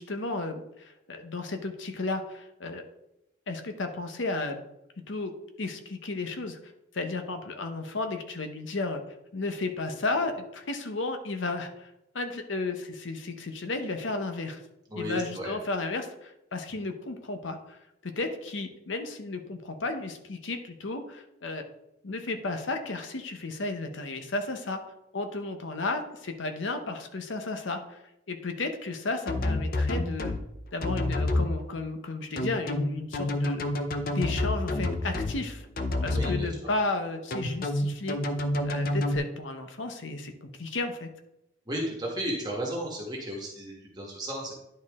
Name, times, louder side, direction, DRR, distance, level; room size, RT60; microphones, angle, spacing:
voice 1, 0.0-2.8 3.5-4.6 5.1-5.3 5.6-6.6 6.9-9.0 9.3-11.9 12.1-14.6 14.9-17.8 18.0-21.7 22.0-24.8 25.1-28.0 28.3-30.3 30.7-33.6 34.1-35.6 36.0-38.2 38.6-41.1, left 3 dB, 80° left, 6 dB, 0.8 m, -33 dB
voice 2, 14.9-15.5 36.1-36.5 41.7-44.5, equal, 20° right, -3 dB, 1.5 m, -34 dB
sound 1, 29.3-30.4 30.8-31.5 32.4-35.4 35.8-36.4 37.3-39.2, left 1 dB, 50° left, 0.6 m, -28 dB
10.5 x 4.4 x 3.6 m, 0.86 s
head